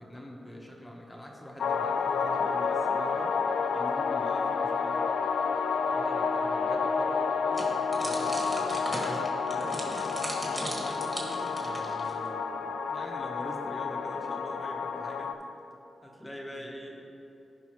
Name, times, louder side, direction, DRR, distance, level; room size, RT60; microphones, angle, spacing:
voice 1, 0.0-3.4 3.7-5.1 10.5-15.4 16.0-17.0, equal, 15° left, -1 dB, 1.0 m, -43 dB
sound 1, 1.6-15.3, left 5 dB, 85° left, 0.4 m, -30 dB
voice 2, 5.9-10.1 16.5-16.7, right 1 dB, 45° right, 0 dB, 1.1 m, -43 dB
sound 2, 7.5-12.3, right 1 dB, 20° right, 1.7 m, -38 dB
15.0 x 5.4 x 3.0 m, 2.8 s
wide cardioid pair, 115°, 0 cm